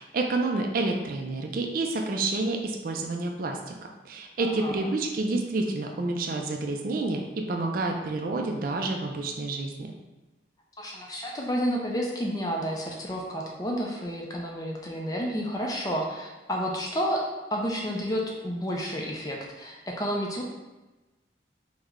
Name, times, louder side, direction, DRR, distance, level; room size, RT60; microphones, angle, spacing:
voice 1, 0.0-3.7 4.0-10.0, right 2 dB, 50° right, 2 dB, 0.3 m, -29 dB
voice 2, 4.4-4.9 10.8-17.2 17.5-20.4, equal, 20° left, -1 dB, 0.4 m, -30 dB
3.1 x 2.1 x 3.6 m, 1.1 s
head